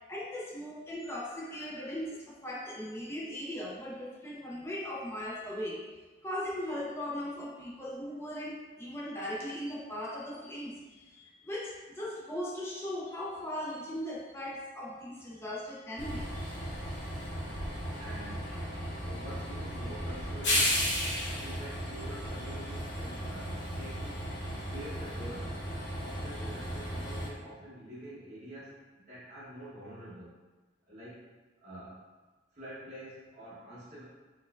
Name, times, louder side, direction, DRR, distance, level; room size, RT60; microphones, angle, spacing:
voice 1, 0.1-5.8 6.2-16.5, left 1 dB, 15° left, -5 dB, 0.5 m, -38 dB
Train, 16.0-27.3, equal, 80° left, 0.9 m, -35 dB
voice 2, 18.0-18.5 19.0-20.8 21.4-24.3 24.6-25.6 26.0-30.3 30.9-31.3 31.6-32.1 32.5-34.0, right 1 dB, 40° right, -11 dB, 0.8 m, -46 dB
4.1 x 2.5 x 2.2 m, 1.3 s
head